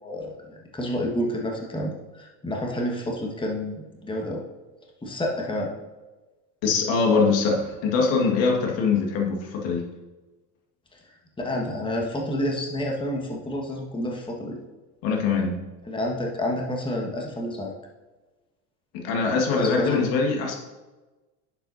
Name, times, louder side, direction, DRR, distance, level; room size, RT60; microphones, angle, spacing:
voice 1, 0.0-4.4 5.0-5.7 10.9-11.0 11.4-14.6 15.9-17.7 19.6-20.0, left 1 dB, 10° left, 0 dB, 1.6 m, -29 dB
voice 2, 6.6-9.9 15.0-15.6 18.9-20.6, left 4 dB, 60° left, 0 dB, 1.9 m, -23 dB
9.8 x 7.5 x 2.8 m, 1.2 s
hypercardioid pair, 85°, 50 cm